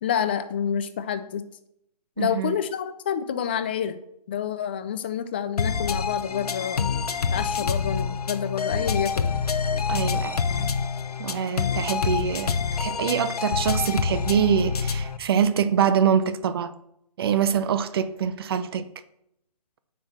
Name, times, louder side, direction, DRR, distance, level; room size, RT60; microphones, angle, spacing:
voice 1, 0.0-1.4 2.2-4.0 4.3-6.9 7.3-9.3, left 8 dB, 15° left, 0.4 m, -28 dB
voice 2, 2.2-2.6 9.9-10.7 11.2-16.7 17.2-18.9, right 8 dB, 35° right, 0.7 m, -24 dB
sound 1, 5.6-15.2, left 5 dB, 65° left, 1.0 m, -26 dB
8.5 x 5.9 x 7.3 m
hypercardioid pair, 155°, 21 cm